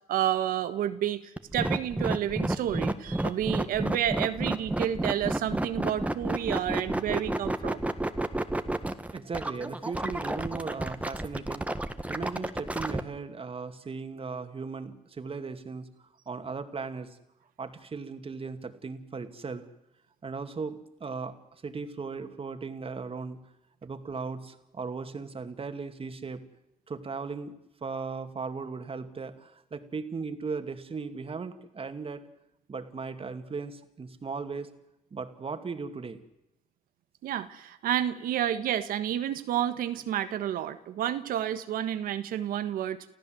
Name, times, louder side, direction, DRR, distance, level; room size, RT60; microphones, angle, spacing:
voice 1, 0.1-7.9 37.2-43.1, right 11 dB, 85° right, 11 dB, 1.5 m, -30 dB
sound 1, 1.4-13.0, right 1 dB, 10° right, 1.6 m, -30 dB
voice 2, 9.1-11.7 12.1-17.2 17.6-19.6 20.2-23.4 23.8-26.4 26.9-27.5 27.8-32.2 32.7-34.7 35.1-36.2, right 4 dB, 40° right, 8 dB, 2.4 m, -37 dB
29.5 x 14.5 x 7.8 m, 0.91 s
cardioid pair, 75°, 14 cm